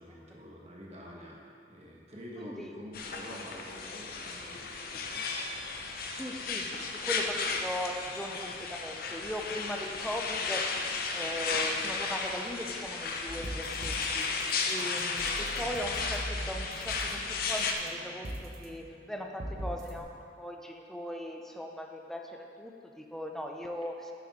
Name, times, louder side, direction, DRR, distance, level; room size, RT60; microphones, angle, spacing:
voice 1, 0.0-1.4 1.7-5.0, equal, 35° right, -2 dB, 1.4 m, -47 dB
voice 2, 2.4-2.7 6.1-10.8 11.1-14.3 14.6-20.1 20.4-24.0, equal, ahead, 2 dB, 0.6 m, -39 dB
sound 1, 2.9-17.7, left 4 dB, 55° left, 0.7 m, -34 dB
sound 2, 13.3-20.0, equal, 60° right, 1.1 m, -41 dB
9.4 x 7.9 x 4.3 m, 2.4 s
head